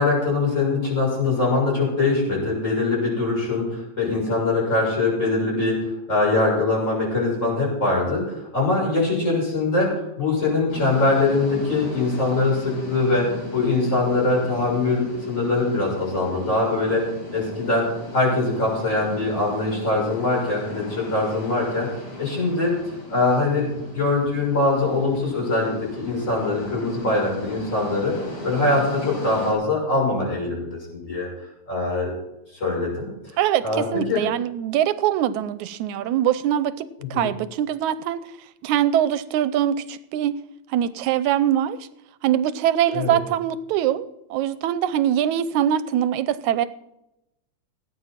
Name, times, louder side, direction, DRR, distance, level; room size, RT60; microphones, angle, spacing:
voice 1, 0.0-17.0 17.3-17.9 18.1-21.9 22.2-22.7 23.1-28.1 28.4-31.3 31.7-32.1 32.6-33.1 33.6-33.8 34.1-34.2 37.1-37.3 42.9-43.2, left 2 dB, 25° left, -3 dB, 6.8 m, -22 dB
sound 1, 10.7-29.5, left 1 dB, 90° left, 6.0 m, -37 dB
voice 2, 26.8-27.1 33.4-38.2 38.6-40.4 40.7-41.8 42.2-44.1 44.3-46.7, right 10 dB, 90° right, 14 dB, 2.1 m, -23 dB
18.0 x 9.1 x 5.9 m, 0.86 s
omnidirectional pair, 3.3 m